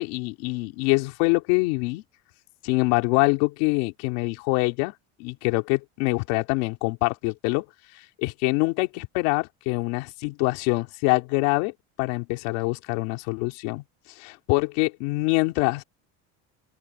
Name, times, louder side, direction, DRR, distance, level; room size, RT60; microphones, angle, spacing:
voice 1, 0.0-2.0 2.6-4.9 5.2-7.6 7.9-15.8, left 25 dB, 75° left, 3.2 m, -25 dB
open air
cardioid pair, 165°, 34 cm